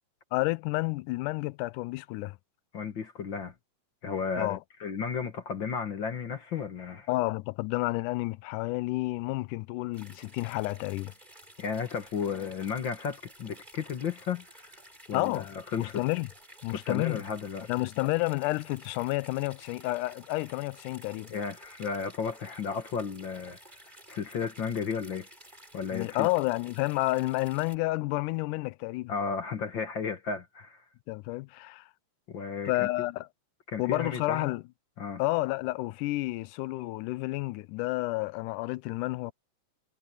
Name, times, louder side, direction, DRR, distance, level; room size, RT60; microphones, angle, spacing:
voice 1, 0.3-2.4 4.4-4.6 7.1-11.1 15.1-15.5 15.8-16.3 16.6-17.2 17.7-21.3 25.9-29.1 31.1-31.9 32.7-33.3 33.8-34.6 35.2-39.3, left 20 dB, 80° left, 2.0 m, -30 dB
voice 2, 2.7-3.5 4.0-7.1 11.6-14.7 15.1-16.0 16.7-17.7 21.3-23.6 24.1-25.3 25.7-26.3 29.1-30.8 32.3-32.9 33.7-34.5 35.0-35.2, left 6 dB, 50° left, 1.4 m, -34 dB
sound 1, 9.9-27.8, right 1 dB, 10° right, 6.3 m, -53 dB
omnidirectional pair, 3.9 m